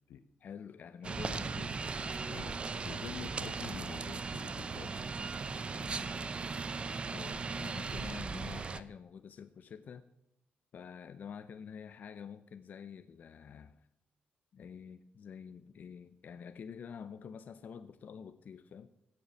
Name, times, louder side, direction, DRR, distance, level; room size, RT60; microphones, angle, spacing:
voice 1, 0.4-2.0 2.3-2.5 5.7-6.2 7.1-10.1 10.7-13.9 14.5-18.9, left 7 dB, 50° left, 11 dB, 0.6 m, -48 dB
sound 1, 1.0-8.8, right 4 dB, 30° right, 0.6 m, -38 dB
voice 2, 2.3-5.0, left 8 dB, 80° left, 12 dB, 1.0 m, -47 dB
15.5 x 7.0 x 8.3 m, 0.85 s
cardioid pair, 145°, 4 cm